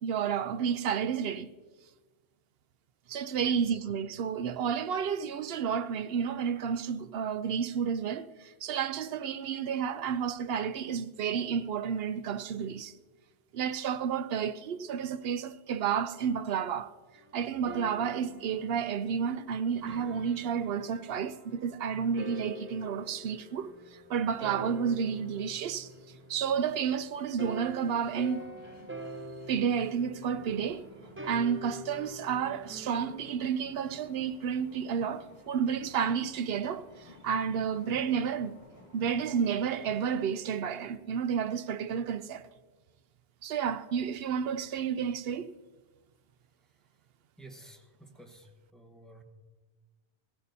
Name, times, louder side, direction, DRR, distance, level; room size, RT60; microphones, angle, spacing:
voice 1, 0.0-1.5 3.1-12.9 13.5-16.9 17.3-25.9 26.3-28.4 29.5-30.9 31.2-38.5 38.9-42.5 43.4-45.5, right 7 dB, 65° right, 0.8 m, -31 dB
voice 2, 3.4-3.7 47.4-49.2, right 1 dB, ahead, 1.2 m, -52 dB
sound 1, 17.1-26.8 27.4-33.4, equal, 15° right, 0.5 m, -46 dB
sound 2, 22.7-40.3, left 2 dB, 30° left, 1.8 m, -56 dB
16.5 x 15.0 x 2.7 m
omnidirectional pair, 1.1 m